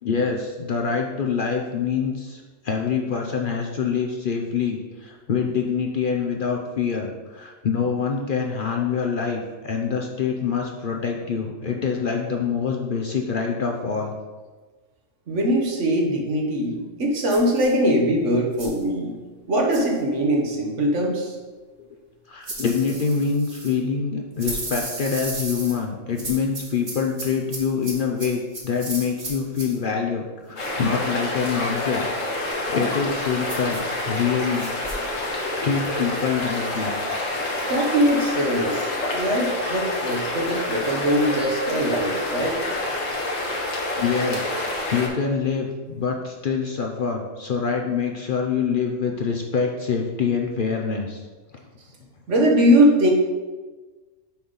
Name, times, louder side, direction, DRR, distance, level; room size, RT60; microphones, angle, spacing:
voice 1, 0.0-14.1 22.3-34.7 35.6-37.0 44.0-44.5 44.9-51.2, left 6 dB, 50° left, 2 dB, 0.7 m, -25 dB
voice 2, 15.3-19.1 19.5-21.4 37.7-42.6 52.3-53.1, equal, 70° right, 0 dB, 1.4 m, -21 dB
sound 1, 17.3-17.7 18.6-18.8 19.7-20.0 22.4-23.7 24.4-25.8 26.2-29.8 33.5-33.9 34.6-35.0, right 2 dB, 45° right, 1.5 m, -35 dB
sound 2, 30.6-45.1, left 2 dB, 80° left, 1.7 m, -27 dB
6.9 x 5.4 x 4.0 m, 1.3 s
omnidirectional pair, 1.3 m